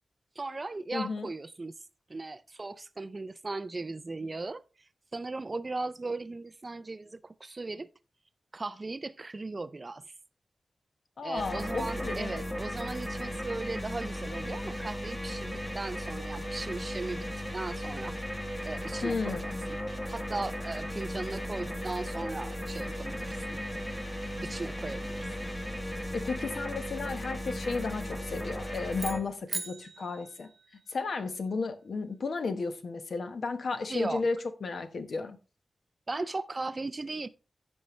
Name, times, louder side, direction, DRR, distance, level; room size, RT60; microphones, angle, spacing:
voice 1, 0.4-1.8 2.1-4.6 5.1-7.9 8.5-10.1 11.2-17.3 17.5-18.2 18.6-19.8 20.1-23.6 24.4-25.3 33.9-34.3 36.1-37.3, right 3 dB, 30° right, 0.4 m, -37 dB
voice 2, 0.9-1.3 11.2-12.4 19.0-19.6 26.1-30.5 30.9-35.4, left 4 dB, 60° left, 1.1 m, -33 dB
sound 1, 11.4-29.2, equal, 10° left, 1.3 m, -36 dB
sound 2, 28.9-31.2, right 4 dB, 50° right, 1.0 m, -40 dB
15.0 x 5.5 x 3.1 m
wide cardioid pair, 170°, 0 cm